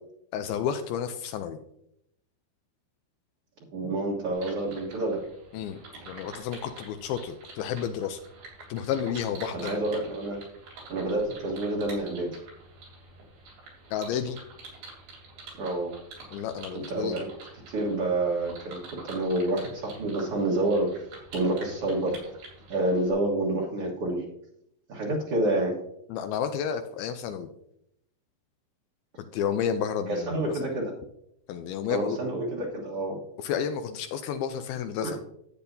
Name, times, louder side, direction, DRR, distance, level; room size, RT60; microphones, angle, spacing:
voice 1, 0.3-1.6 5.5-5.8 6.1-8.2 8.7-9.8 13.9-14.4 16.3-17.2 26.1-27.5 29.3-30.7 31.5-32.2 33.4-35.2, left 8 dB, 80° left, 8 dB, 2.3 m, -31 dB
voice 2, 3.7-5.2 9.5-10.4 10.9-12.3 15.6-15.9 16.9-17.3 17.5-20.9 21.3-22.2 22.7-24.2 24.9-25.8 30.1-30.9 31.9-33.2 35.0-35.1, right 2 dB, 55° right, -4 dB, 1.7 m, -28 dB
sound 1, 4.3-23.1, right 3 dB, 85° right, 5.1 m, -47 dB
12.0 x 8.6 x 2.7 m, 0.77 s
omnidirectional pair, 4.5 m